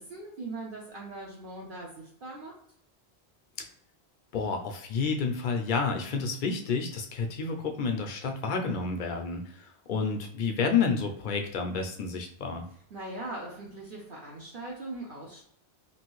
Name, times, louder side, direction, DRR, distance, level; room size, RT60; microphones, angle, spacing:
voice 1, 0.0-2.5 12.9-15.4, right 2 dB, 55° right, -3 dB, 0.8 m, -40 dB
voice 2, 4.3-12.7, left 5 dB, 60° left, 4 dB, 0.6 m, -30 dB
3.0 x 2.5 x 3.0 m, 0.66 s
omnidirectional pair, 1.1 m